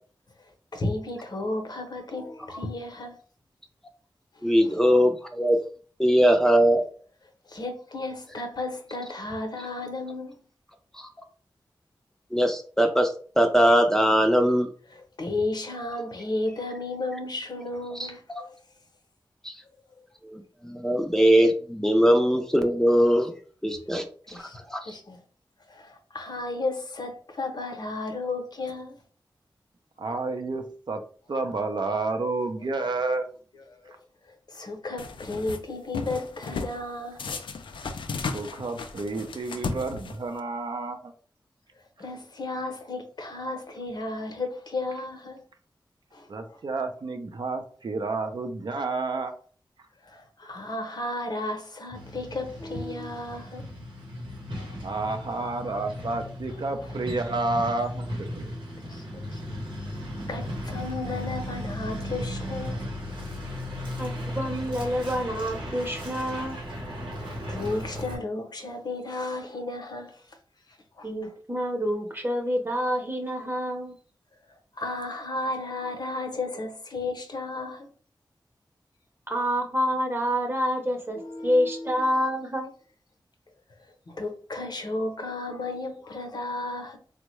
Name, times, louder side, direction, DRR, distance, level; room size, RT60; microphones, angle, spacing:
voice 1, 0.7-3.2 4.6-4.8 7.5-10.4 14.9-18.5 24.3-24.6 24.9-25.2 25.7-29.0 33.5-34.0 34.5-37.4 40.2-40.3 42.0-45.4 46.1-46.3 50.1-53.7 54.5-54.8 56.5-56.9 58.8-59.4 59.9-60.0 60.3-62.8 67.5-70.1 71.0-71.3 74.8-77.9 81.1-82.1 84.1-87.0, left 2 dB, 60° left, 0.7 m, -33 dB
voice 2, 4.4-5.6 6.0-6.8 12.3-13.1 13.4-14.7 18.0-18.1 18.3-18.4 19.4-19.5 20.3-23.3 23.6-24.0 24.7-24.8, equal, 5° left, 0.5 m, -21 dB
voice 3, 30.0-31.0 31.3-33.3 38.3-41.1 46.3-49.3 54.8-58.4, right 3 dB, 65° right, 0.5 m, -30 dB
sound 1, 35.0-35.6 35.9-36.8 37.2-40.4, left 4 dB, 90° left, 0.3 m, -34 dB
Truck, 51.9-68.1, left 1 dB, 90° right, 0.9 m, -36 dB
voice 4, 64.0-66.6 71.0-73.9 79.3-82.7, equal, 25° right, 0.9 m, -27 dB
3.5 x 2.1 x 3.0 m
cardioid pair, 55°, 8 cm